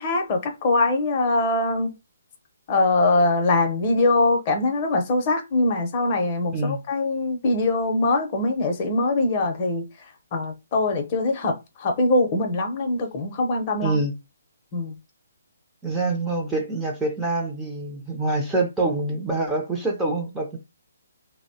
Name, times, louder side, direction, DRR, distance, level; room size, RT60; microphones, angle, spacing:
voice 1, 0.0-1.9 2.7-9.8 10.3-14.0 14.7-14.9, left 2 dB, 35° left, 0.7 m, -22 dB
voice 2, 6.5-6.8 13.8-14.1 15.8-20.6, right 2 dB, 10° right, 0.5 m, -25 dB
3.0 x 2.0 x 2.7 m
hypercardioid pair, 150°, 0 cm